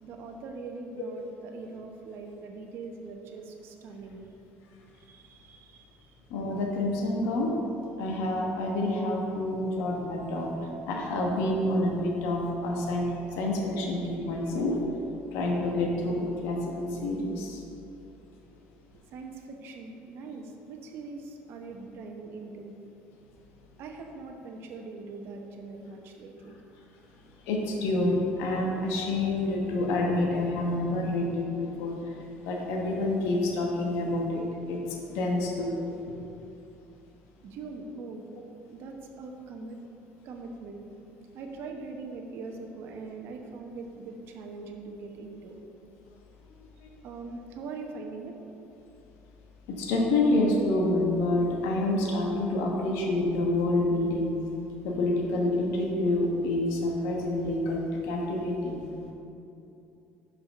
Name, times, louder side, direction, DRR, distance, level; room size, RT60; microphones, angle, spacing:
voice 1, 0.0-4.3 5.0-6.1 19.1-22.7 23.8-26.6 37.4-38.4 38.7-39.8 40.2-40.9 41.3-45.6 47.0-48.3, right 3 dB, 60° right, 2 dB, 0.9 m, -42 dB
voice 2, 6.3-7.5 8.0-10.5 10.9-13.1 13.4-14.8 15.3-17.6 27.5-32.0 32.4-34.4 34.7-34.8 35.1-35.8 36.1-36.2 49.7-54.3 54.8-58.8, left 2 dB, 85° left, 0 dB, 1.2 m, -27 dB
5.5 x 5.5 x 6.6 m, 2.8 s
cardioid pair, 110°, 4 cm